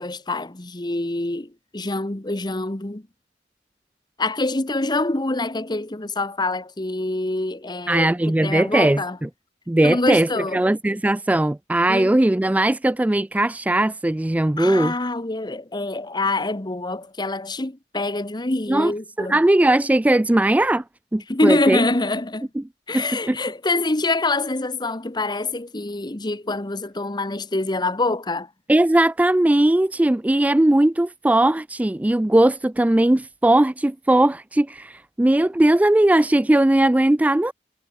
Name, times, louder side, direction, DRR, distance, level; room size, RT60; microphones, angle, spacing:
voice 1, 0.0-3.0 4.2-9.2 9.8-10.7 11.9-12.1 14.6-19.4 21.3-22.5 22.9-28.5, left 2 dB, 25° left, 1.2 m, -25 dB
voice 2, 7.9-9.3 9.7-14.9 18.7-18.9 19.2-20.8 21.1-21.8 22.9-23.4 28.7-37.5, right 1 dB, 10° right, 0.3 m, -19 dB
head